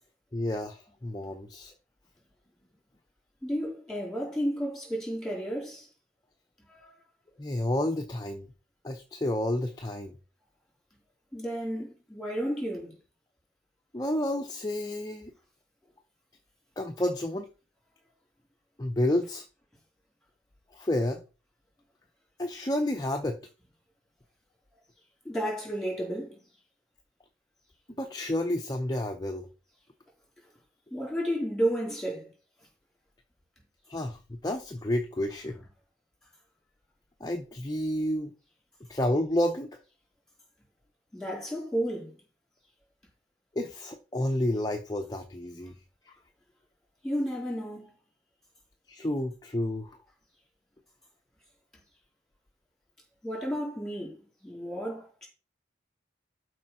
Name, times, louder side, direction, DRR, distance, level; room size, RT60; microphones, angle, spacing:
voice 1, 0.3-1.7 7.4-8.5 8.8-10.1 13.9-15.3 16.8-17.5 18.8-19.5 20.7-21.2 22.4-23.4 28.0-29.5 33.9-35.6 37.2-38.3 38.9-39.8 43.6-45.7 46.1-46.2 48.9-50.0, left 1 dB, 20° left, 0.6 m, -30 dB
voice 2, 3.4-5.9 6.7-6.9 11.3-13.0 25.2-26.4 30.9-32.3 41.1-42.1 47.0-47.9 53.2-54.2 54.4-55.3, equal, 5° left, 3.8 m, -32 dB
12.0 x 5.0 x 4.3 m
head